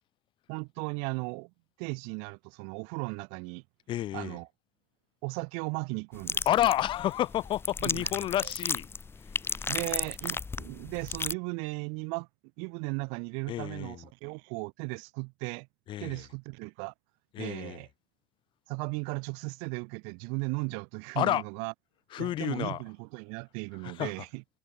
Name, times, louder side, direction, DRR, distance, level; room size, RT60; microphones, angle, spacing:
voice 1, 0.5-1.5 1.8-3.6 4.1-4.5 5.2-6.5 7.8-8.1 8.4-8.5 9.7-12.3 12.6-15.7 16.0-16.9 17.4-17.9 18.7-21.7 22.2-24.4, right 37 dB, 60° right, 4.9 m, -36 dB
voice 2, 3.9-4.4 6.5-8.9 9.4-9.7 13.5-14.0 15.9-16.2 17.3-17.8 21.2-21.4 22.1-22.8 23.8-24.1, left 13 dB, 50° left, 2.4 m, -30 dB
sound 1, 6.1-11.3, left 4 dB, 20° left, 1.3 m, -34 dB
figure-of-eight pair, 60°, 11 cm